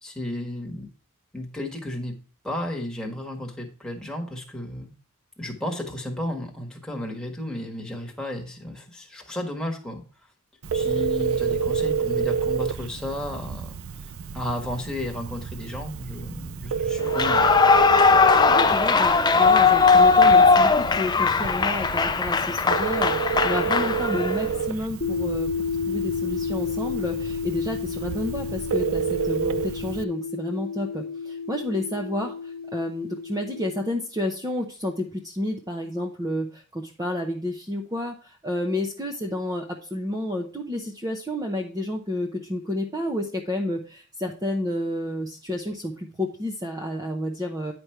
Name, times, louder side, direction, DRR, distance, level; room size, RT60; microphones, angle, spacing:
voice 1, 0.0-0.9 1.3-2.1 2.4-4.9 5.4-10.0 10.7-13.7 14.3-17.6, left 1 dB, 5° left, 1 dB, 1.5 m, -33 dB
Telephone, 10.6-30.0, right 6 dB, 75° right, 0.5 m, -29 dB
Clapping / Cheering / Applause, 17.1-24.5, left 4 dB, 20° left, 0.4 m, -19 dB
voice 2, 18.5-25.5 25.9-47.7, left 1 dB, 15° right, 2 dB, 0.8 m, -30 dB
sound 1, 25.0-33.8, left 5 dB, 45° left, 1.3 m, -31 dB
9.7 x 5.2 x 4.5 m, 0.37 s
head